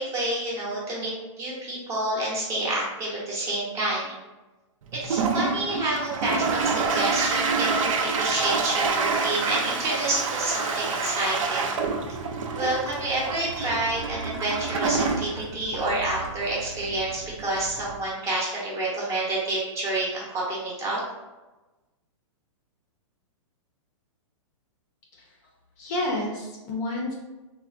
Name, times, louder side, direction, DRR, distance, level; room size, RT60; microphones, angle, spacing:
voice 1, 0.0-4.1 4.9-11.8 12.6-21.0, right 2 dB, 20° right, -4 dB, 0.7 m, -28 dB
Toilet flush, 4.9-18.1, right 4 dB, 85° right, 0.4 m, -28 dB
voice 2, 25.8-27.1, left 1 dB, 35° left, -1 dB, 0.5 m, -30 dB
3.4 x 2.0 x 2.4 m, 1.1 s
hypercardioid pair, 155°, 16 cm